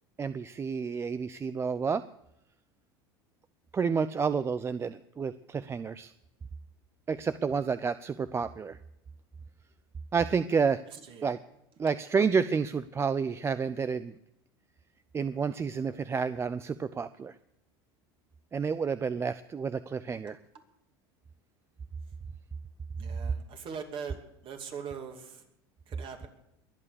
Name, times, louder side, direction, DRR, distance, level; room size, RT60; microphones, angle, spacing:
voice 1, 0.2-2.0 3.7-6.1 7.1-8.8 10.1-10.8 11.2-11.4 11.8-14.1 15.1-17.4 18.5-20.4, right 5 dB, 20° right, 14 dB, 0.5 m, -30 dB
voice 2, 10.9-11.3 23.0-25.5 25.9-26.3, right 6 dB, 40° right, 4 dB, 2.8 m, -41 dB
22.5 x 8.8 x 6.9 m, 0.80 s
supercardioid pair, 105°, 13 cm